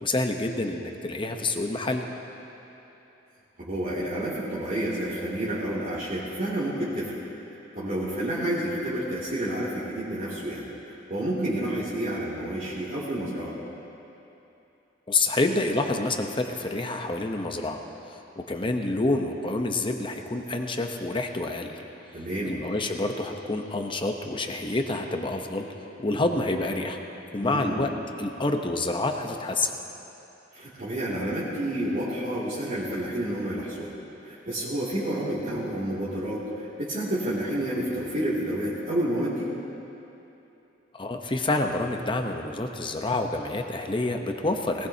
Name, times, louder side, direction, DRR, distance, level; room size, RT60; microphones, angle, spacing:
voice 1, 0.0-2.1 15.1-17.8 18.1-21.7 22.5-25.7 26.0-27.0 27.3-27.9 28.2-29.7 40.9-44.9, left 2 dB, 25° left, 4 dB, 0.9 m, -28 dB
voice 2, 3.6-7.2 7.7-13.5 22.1-22.6 27.4-27.8 30.5-33.9 34.2-39.5, right 1 dB, 45° right, -11 dB, 2.6 m, -30 dB
19.5 x 19.0 x 2.8 m, 2.9 s
head